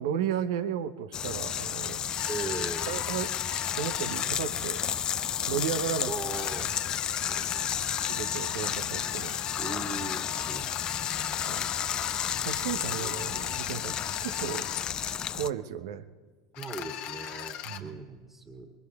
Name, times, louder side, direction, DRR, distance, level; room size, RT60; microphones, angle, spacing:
voice 1, 0.0-2.0 2.9-3.3 3.8-4.8 5.5-6.1 8.1-9.4 11.4-11.7 12.4-13.9 14.2-14.7 15.3-16.0 17.6-18.0, right 8 dB, 70° right, 11 dB, 0.8 m, -34 dB
sound 1, 1.1-15.5, left 9 dB, 35° left, 0.4 m, -32 dB
sound 2, 2.2-4.3 6.3-14.8 16.5-17.8, left 11 dB, 55° left, 1.2 m, -39 dB
voice 2, 2.3-2.9 5.4-5.6 6.1-6.7 7.3-8.0 9.6-11.5 12.9-13.4 16.6-18.7, right 3 dB, 25° right, -1 dB, 2.0 m, -40 dB
27.0 x 22.5 x 2.4 m, 1.5 s
hypercardioid pair, 90°, 2 cm